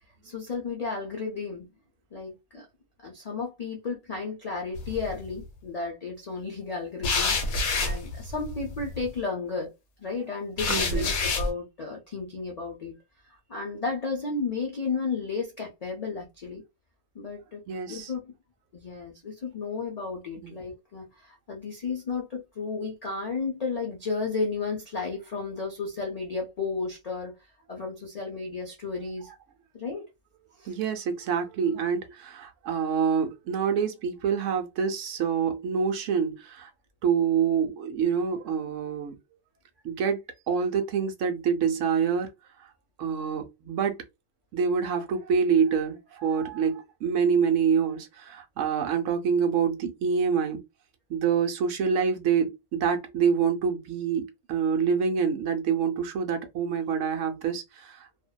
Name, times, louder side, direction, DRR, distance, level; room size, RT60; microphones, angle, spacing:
voice 1, 0.2-1.7 2.1-2.7 3.0-9.7 10.0-12.9 13.2-16.6 17.1-17.6 17.9-18.3 18.7-27.4 27.7-29.3 29.7-30.1 30.6-30.7, left 4 dB, 55° left, 0.4 m, -33 dB
sound 1, 4.8-5.3 7.0-9.1 10.6-11.5, left 3 dB, 85° left, 1.2 m, -28 dB
voice 2, 10.7-11.1 17.7-18.1 20.4-20.6 30.7-36.7 37.0-39.2 39.8-40.2 40.5-42.3 42.6-42.7 43.0-44.0 44.5-50.6 51.1-58.1, right 6 dB, 70° right, 0.9 m, -26 dB
2.6 x 2.1 x 2.2 m
omnidirectional pair, 1.4 m